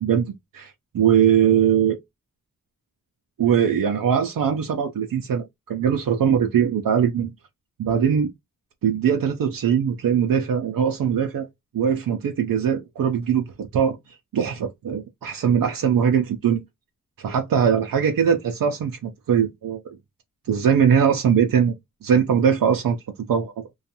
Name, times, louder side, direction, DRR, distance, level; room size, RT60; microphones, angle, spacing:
voice 1, 0.0-2.0 3.4-7.3 7.8-8.3 8.8-11.5 11.7-14.0 14.3-16.6 17.2-19.8 20.5-21.7 22.0-23.0 23.3-23.5, right 8 dB, 80° right, 0.5 m, -21 dB
2.5 x 2.3 x 2.7 m
cardioid pair, 50°, 34 cm